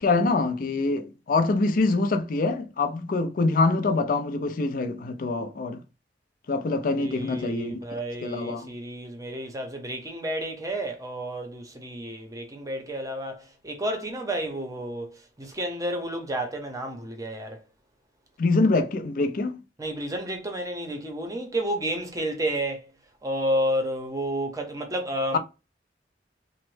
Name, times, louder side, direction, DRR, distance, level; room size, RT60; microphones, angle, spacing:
voice 1, 0.0-5.8 6.5-8.7 18.4-19.6 25.3-25.4, left 3 dB, 50° left, 0.4 m, -25 dB
voice 2, 7.0-15.1 15.4-17.6 19.8-22.8 23.2-25.4, right 1 dB, 20° right, 0.7 m, -31 dB
3.1 x 2.1 x 3.1 m
head